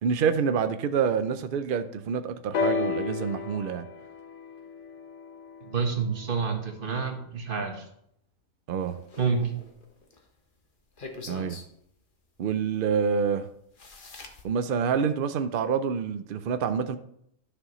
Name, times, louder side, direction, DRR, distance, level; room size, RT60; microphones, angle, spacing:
voice 1, 0.0-3.9 8.7-9.0 11.3-11.6 12.4-13.5 14.4-17.0, right 6 dB, 75° right, 0.4 m, -27 dB
sound 1, 2.5-6.4 7.3-7.4, left 5 dB, 60° left, 1.0 m, -32 dB
voice 2, 5.6-7.9 9.2-9.5, right 5 dB, 40° right, 1.3 m, -28 dB
sound 2, 8.8-10.2 11.0-11.7 13.2-13.3 13.8-14.4, left 3 dB, 40° left, 1.1 m, -44 dB
11.0 x 6.5 x 3.1 m
omnidirectional pair, 1.5 m